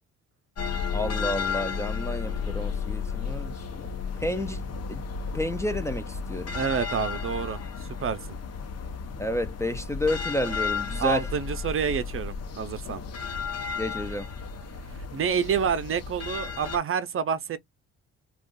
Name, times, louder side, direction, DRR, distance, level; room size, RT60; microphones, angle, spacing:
sound 1, 0.6-16.8, left 5 dB, 55° left, 0.9 m, -33 dB
voice 1, 0.9-3.6 4.2-4.6 4.9-5.0 5.3-6.5 9.2-11.2 13.8-14.3, left 1 dB, 10° left, 0.5 m, -30 dB
voice 2, 6.5-8.2 11.0-13.0 14.9-17.6, right 7 dB, 45° right, 0.6 m, -28 dB
2.4 x 2.4 x 3.7 m
cardioid pair, 90°, 30 cm